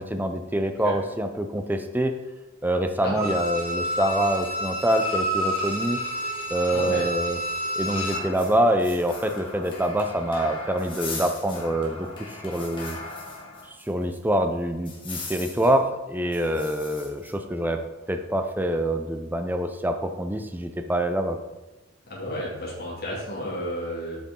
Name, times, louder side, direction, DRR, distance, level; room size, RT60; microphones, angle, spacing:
voice 1, 0.0-2.2 2.6-6.0 6.5-7.4 7.8-13.0 13.8-17.8 18.1-21.4, right 1 dB, 10° right, 7 dB, 0.5 m, -25 dB
Bowed string instrument, 3.1-8.3 8.7-8.8, equal, 80° left, 2.2 m, -29 dB
voice 2, 6.7-7.1 22.1-24.2, left 1 dB, 50° left, -5 dB, 2.5 m, -32 dB
sound 1, 8.1-13.9 14.1-14.2 14.9-15.8 16.3-17.3, left 3 dB, 25° left, 1.6 m, -39 dB
8.0 x 6.1 x 3.7 m, 1.1 s
head